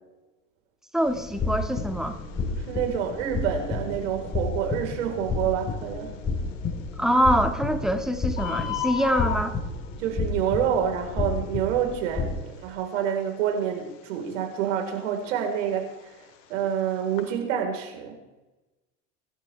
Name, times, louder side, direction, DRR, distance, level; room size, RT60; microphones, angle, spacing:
voice 1, 0.9-2.2 7.0-9.5, equal, ahead, 6 dB, 1.7 m, -24 dB
Bird, 1.0-17.3, left 10 dB, 70° left, 2.7 m, -40 dB
sound 1, 1.1-12.3, left 3 dB, 25° left, 4.1 m, -31 dB
voice 2, 2.6-6.1 10.0-16.1 16.5-18.1, right 8 dB, 70° right, 2 dB, 4.3 m, -27 dB
25.0 x 12.0 x 3.4 m, 1.1 s
hypercardioid pair, 95°, 38 cm